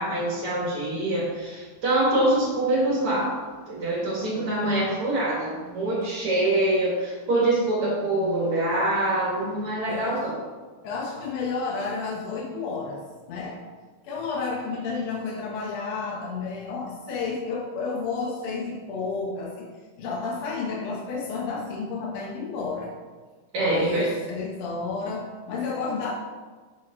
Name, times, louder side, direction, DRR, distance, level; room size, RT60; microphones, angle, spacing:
voice 1, 0.0-3.4 3.7-10.4 23.5-24.1, right 1 dB, 50° right, -5 dB, 2.3 m, -25 dB
voice 2, 9.9-10.3 10.8-13.6 14.0-19.7 20.0-22.9 23.6-26.1, left 4 dB, 70° left, -3 dB, 1.8 m, -31 dB
8.8 x 6.3 x 2.5 m, 1.4 s
omnidirectional pair, 3.5 m